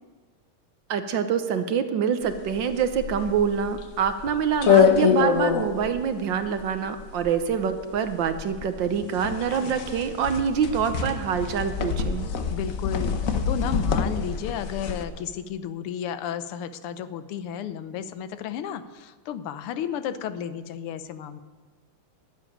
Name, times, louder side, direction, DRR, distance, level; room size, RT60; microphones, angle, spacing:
voice 1, 0.9-12.3, right 7 dB, 65° right, 9 dB, 1.4 m, -26 dB
sound 1, 2.3-15.0, left 6 dB, 50° left, 1.1 m, -25 dB
voice 2, 12.5-21.4, left 8 dB, 85° left, 12 dB, 1.7 m, -33 dB
12.5 x 7.9 x 10.0 m, 1.4 s
omnidirectional pair, 2.4 m